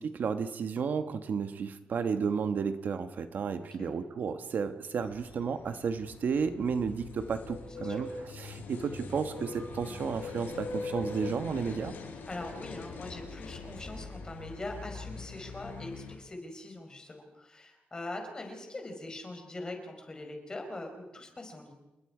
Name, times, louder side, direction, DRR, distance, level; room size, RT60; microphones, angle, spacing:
voice 1, 0.0-11.9, right 6 dB, 60° right, 9 dB, 1.2 m, -32 dB
voice 2, 3.6-3.9 7.8-8.1 12.2-21.7, left 2 dB, 20° left, 3 dB, 4.6 m, -42 dB
sound 1, 5.0-16.2, left 3 dB, 80° left, 5.6 m, -42 dB
29.0 x 20.5 x 5.0 m, 1.0 s
wide cardioid pair, 150°, 3 cm